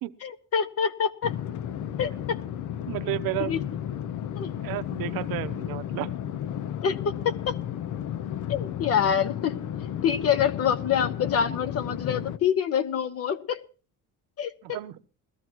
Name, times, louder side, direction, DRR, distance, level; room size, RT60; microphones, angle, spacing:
voice 1, 0.2-1.3 2.0-2.4 3.4-3.6 4.4-4.5 6.8-7.5 8.5-9.6 10.0-13.6 14.4-14.8, left 8 dB, 45° left, 1.3 m, -26 dB
sound 1, 1.2-12.4, left 10 dB, 60° left, 0.8 m, -33 dB
voice 2, 2.9-3.6 4.6-6.1 14.6-15.0, right 16 dB, 85° right, 0.9 m, -32 dB
21.0 x 14.0 x 3.0 m
cardioid pair, 160°, 34 cm